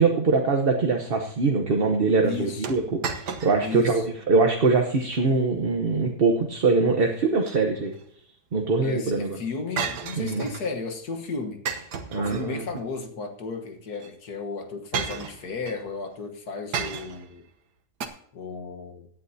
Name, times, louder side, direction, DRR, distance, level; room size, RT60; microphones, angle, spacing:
voice 1, 0.0-7.9 8.5-9.4 10.1-10.4 12.1-12.6, right 4 dB, 40° right, 3 dB, 1.1 m, -23 dB
voice 2, 2.2-2.7 3.6-4.1 8.8-11.6 12.1-17.5 18.3-19.1, left 4 dB, 70° left, 5 dB, 1.8 m, -34 dB
sound 1, 2.6-3.8 4.2-4.3 4.9-5.3 7.2-8.0 9.8-10.8 11.7-12.8 14.0-14.1 14.9-15.8 16.7-17.3 18.0-18.1, right 6 dB, 90° right, 1.7 m, -33 dB
17.0 x 10.0 x 2.8 m, 0.64 s
omnidirectional pair, 1.7 m